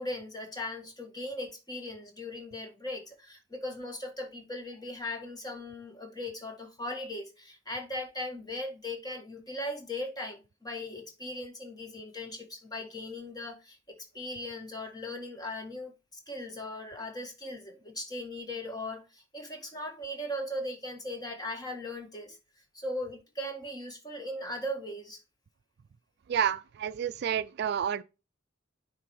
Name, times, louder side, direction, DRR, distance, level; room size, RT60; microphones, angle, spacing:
voice 1, 0.0-22.4 22.7-25.2, left 1 dB, 20° left, 1.6 m, -38 dB
voice 2, 26.3-28.0, right 8 dB, 55° right, 0.4 m, -29 dB
9.6 x 3.3 x 4.6 m
head